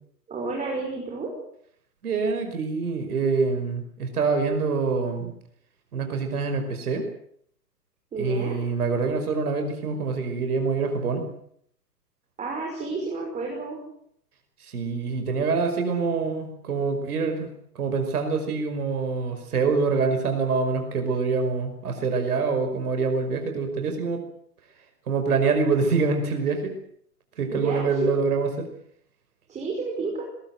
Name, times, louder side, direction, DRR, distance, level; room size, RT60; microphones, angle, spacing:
voice 1, 0.3-1.3 8.1-8.6 12.4-13.8 27.5-28.1 29.5-30.2, right 3 dB, 15° right, 0 dB, 5.7 m, -30 dB
voice 2, 2.0-5.3 5.9-7.1 8.2-11.2 14.6-17.5 17.8-24.2 25.1-26.7 27.4-28.7, right 4 dB, 60° right, 5 dB, 5.6 m, -25 dB
21.5 x 20.5 x 7.9 m, 0.67 s
figure-of-eight pair, 125°, 49 cm